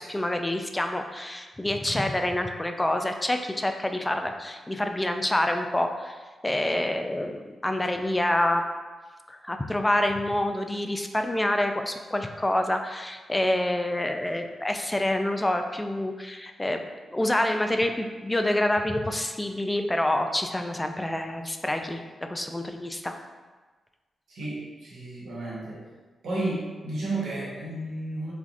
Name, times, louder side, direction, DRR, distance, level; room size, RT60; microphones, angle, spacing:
voice 1, 0.0-8.6 9.3-16.8 17.1-23.2, left 1 dB, 20° left, 5 dB, 0.3 m, -27 dB
voice 2, 24.3-25.8 26.2-28.3, right 2 dB, 75° right, -7 dB, 0.9 m, -32 dB
3.3 x 2.3 x 2.6 m, 1.3 s
supercardioid pair, 40°, 0 cm